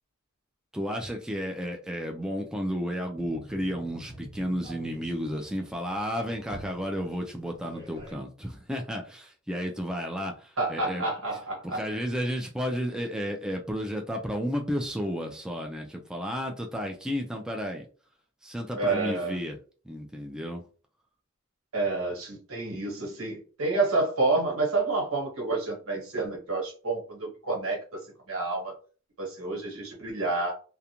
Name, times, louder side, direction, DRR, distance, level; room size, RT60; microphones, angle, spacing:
voice 1, 0.7-11.1 11.6-17.9 18.4-19.6 19.9-20.6, equal, 5° right, 0.3 m, -32 dB
sound 1, 3.1-8.1, right 1 dB, 20° right, 0.9 m, -46 dB
voice 2, 10.6-11.8 18.8-19.4 21.7-28.0 28.3-28.7 29.2-30.5, right 3 dB, 85° right, 1.2 m, -29 dB
2.4 x 2.1 x 2.8 m
head